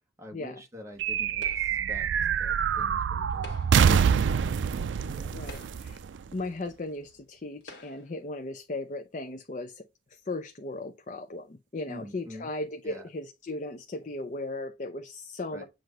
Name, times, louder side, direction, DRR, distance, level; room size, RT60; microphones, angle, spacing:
voice 1, 0.2-2.1 2.4-3.5 3.8-5.6 11.9-12.5 12.8-13.1 15.5-15.7, equal, 15° right, 1.3 m, -46 dB
sound 1, 1.0-6.7, right 7 dB, 80° right, 0.3 m, -26 dB
sound 2, 1.4-1.9 3.3-4.0 4.8-4.9 5.4-6.1 6.9-7.0 7.6-8.2, left 2 dB, 75° left, 1.4 m, -49 dB
voice 2, 5.3-6.0 6.3-9.9 10.1-15.6, left 2 dB, 40° left, 0.6 m, -37 dB
7.7 x 2.6 x 5.1 m
head